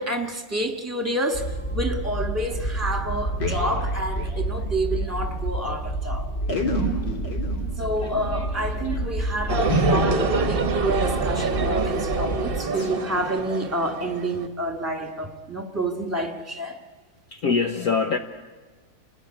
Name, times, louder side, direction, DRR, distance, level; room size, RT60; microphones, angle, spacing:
voice 1, 0.0-1.5 1.7-6.3 7.8-16.8, right 1 dB, 10° right, 1.7 m, -28 dB
Train, 1.3-12.6, right 2 dB, 35° left, 2.9 m, -29 dB
sound 1, 3.0-5.1 5.4-5.5 5.7-5.8 6.4-11.5 11.9-12.2 12.7-13.0 13.4-13.7 14.2-14.4 15.0-15.1, equal, 75° left, 3.6 m, -31 dB
sound 2, 9.5-14.5, right 4 dB, 35° right, 1.1 m, -26 dB
voice 2, 17.3-18.2, left 5 dB, 60° left, 1.4 m, -23 dB
29.0 x 19.5 x 10.0 m
omnidirectional pair, 2.0 m